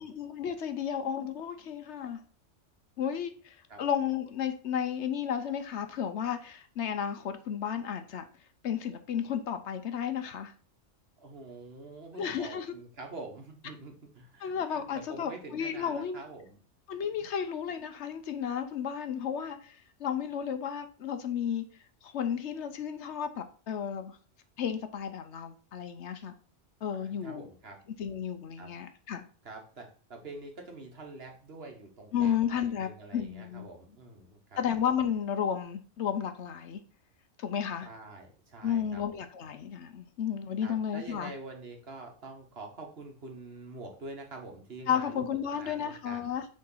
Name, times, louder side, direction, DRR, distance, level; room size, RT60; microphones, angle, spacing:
voice 1, 0.0-2.2 3.0-8.2 8.6-10.5 12.2-12.7 14.4-16.2 16.9-21.6 22.0-24.2 24.6-26.3 26.8-27.5 28.0-29.2 32.1-33.7 34.6-36.8 37.4-37.9 38.6-41.3 44.9-46.5, left 8 dB, 70° left, 9 dB, 1.0 m, -33 dB
voice 2, 11.2-16.6 27.0-27.8 28.6-28.7 29.4-34.6 37.8-39.2 40.6-46.3, right 3 dB, 55° right, 3 dB, 1.5 m, -46 dB
6.3 x 3.8 x 5.5 m, 0.40 s
omnidirectional pair, 1.2 m